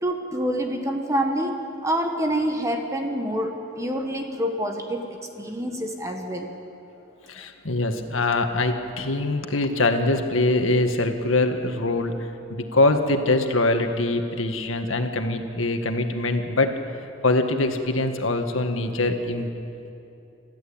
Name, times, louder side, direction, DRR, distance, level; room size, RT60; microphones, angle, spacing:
voice 1, 0.0-6.5, equal, 15° right, 3 dB, 1.5 m, -27 dB
voice 2, 7.3-12.2 12.5-16.7 17.2-19.5, left 2 dB, 85° left, 5 dB, 1.8 m, -23 dB
27.0 x 14.0 x 8.8 m, 2.7 s
head